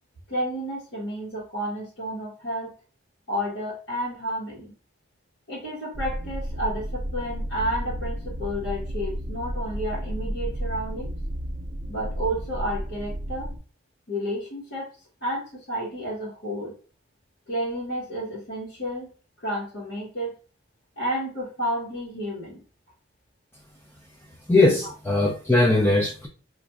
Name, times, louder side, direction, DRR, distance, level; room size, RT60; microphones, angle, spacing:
voice 1, 0.3-2.7 3.3-4.7 5.5-11.1 11.9-13.5 14.1-14.9 15.2-16.8 17.5-19.1 19.4-20.3 21.0-22.6, equal, 75° left, -8 dB, 1.2 m, -31 dB
sound 1, 5.9-13.6, equal, 45° right, 0.5 m, -32 dB
voice 2, 24.5-26.3, left 2 dB, 10° left, 0 dB, 0.4 m, -20 dB
4.1 x 2.5 x 2.3 m, 0.38 s
head